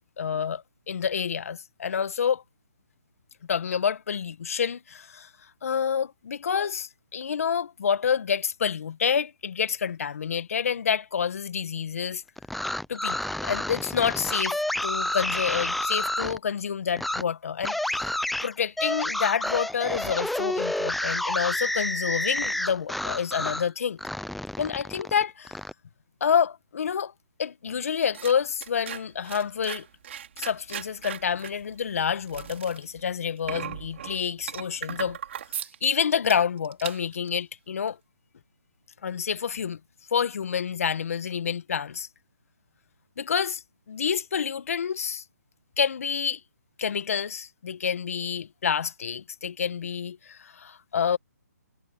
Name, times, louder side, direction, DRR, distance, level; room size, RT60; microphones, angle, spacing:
voice 1, 0.2-2.4 3.5-12.2 12.9-18.1 18.4-24.0 24.6-25.6 26.2-27.1 27.4-29.9 30.4-35.2 35.6-38.0 39.0-39.8 40.1-42.1 43.2-45.2 45.8-46.4 46.8-51.2, left 7 dB, 55° left, 1.7 m, -28 dB
sound 1, 12.4-16.4 17.0-17.2 17.6-23.7 24.0-25.7, left 1 dB, ahead, 0.5 m, -29 dB
sound 2, 27.7-35.9 36.2-36.4 36.6-37.3 37.9-38.0, right 9 dB, 45° right, 5.1 m, -38 dB
hypercardioid pair, 160°, 9 cm